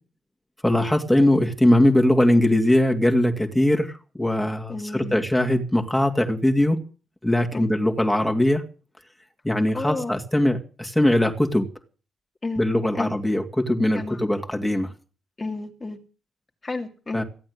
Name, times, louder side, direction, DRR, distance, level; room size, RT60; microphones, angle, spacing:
voice 1, 0.6-6.8 7.2-8.6 9.4-11.7 12.6-14.9 17.1-17.2, left 1 dB, 5° left, 2.5 m, -21 dB
voice 2, 4.7-5.2 7.5-7.7 9.7-10.1 12.4-12.6 12.9-13.1 13.9-14.2 15.4-16.0 16.6-17.2, left 3 dB, 25° left, 2.6 m, -31 dB
15.5 x 8.6 x 9.7 m
cardioid pair, 90°, 0 cm